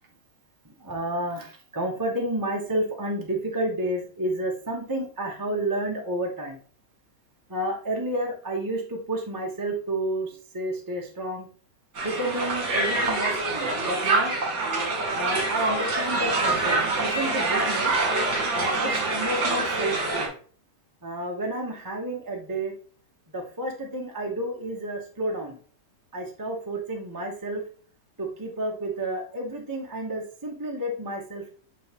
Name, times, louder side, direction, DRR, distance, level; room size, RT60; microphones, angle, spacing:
voice 1, 0.6-6.6 7.5-11.5 12.0-14.4 15.1-17.9 18.5-20.3 21.0-22.7 23.3-25.6 26.1-27.6 28.2-31.5, right 1 dB, 15° right, 0 dB, 0.9 m, -30 dB
Crowd, 12.0-20.3, right 3 dB, 55° right, 2.0 m, -25 dB
6.3 x 5.2 x 3.0 m, 0.43 s
omnidirectional pair, 1.8 m